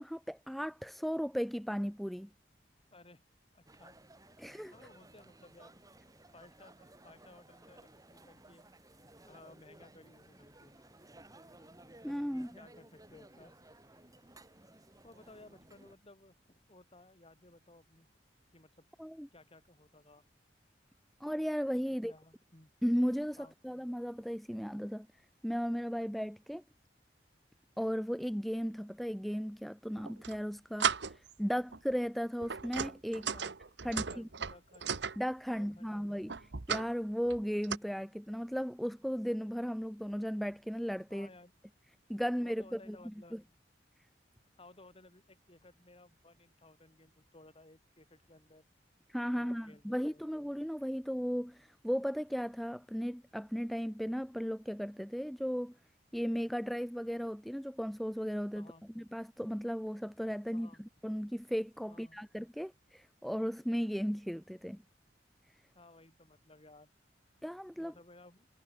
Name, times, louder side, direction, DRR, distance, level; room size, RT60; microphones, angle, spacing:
voice 1, 0.0-2.3 4.4-4.7 12.0-12.6 19.0-19.3 21.2-22.1 22.8-23.4 23.6-25.1 25.4-26.6 27.8-33.3 33.8-34.3 35.2-36.3 36.7-41.3 42.1-43.0 43.3-43.4 49.1-55.7 56.1-58.7 59.0-60.7 61.0-64.8 67.4-67.9, equal, ahead, 1.1 m, -36 dB
voice 2, 2.9-3.2 3.5-4.0 4.7-5.7 6.3-8.7 9.3-10.7 12.5-13.6 15.0-18.1 18.5-18.9 19.3-20.2 21.9-22.7 23.4-23.5 33.3-33.5 33.8-34.9 35.5-36.2 41.1-41.5 42.4-43.4 44.6-48.6 49.3-50.2 58.5-58.9 60.5-60.9 61.9-62.2 65.7-66.9 67.8-68.5, left 2 dB, 35° left, 4.7 m, -58 dB
sound 1, 3.7-16.0, right 1 dB, 20° right, 3.4 m, -58 dB
sound 2, 30.0-30.4 30.8-31.3 31.7-31.9 32.4-35.2 36.3-36.9 37.2-37.8, right 6 dB, 75° right, 1.1 m, -35 dB
head